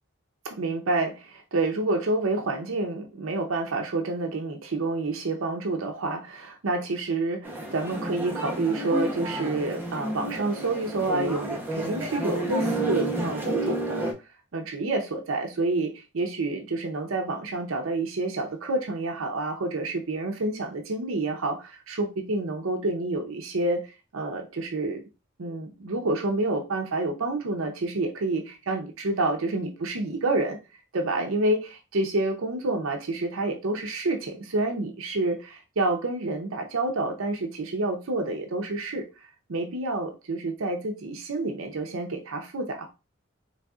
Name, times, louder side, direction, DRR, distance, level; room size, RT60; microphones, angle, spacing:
voice 1, 0.4-14.1 14.5-25.0 25.4-30.6 30.9-39.0 39.5-42.9, right 2 dB, 85° right, 0.6 m, -28 dB
sound 1, 7.4-14.1, right 1 dB, 10° right, 0.8 m, -30 dB
3.9 x 3.3 x 2.3 m
head